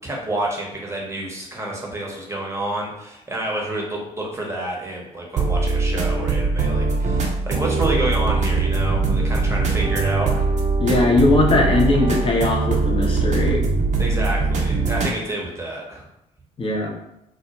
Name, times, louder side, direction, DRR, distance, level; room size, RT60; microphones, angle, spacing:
voice 1, 0.0-10.4 14.0-16.1, right 1 dB, 15° right, -2 dB, 0.9 m, -29 dB
sound 1, 5.4-15.1, right 3 dB, 40° right, 0.6 m, -21 dB
voice 2, 10.8-13.7 16.6-16.9, left 2 dB, 30° left, 0 dB, 0.7 m, -19 dB
2.3 x 2.1 x 2.9 m, 0.82 s
figure-of-eight pair, 45°, 18 cm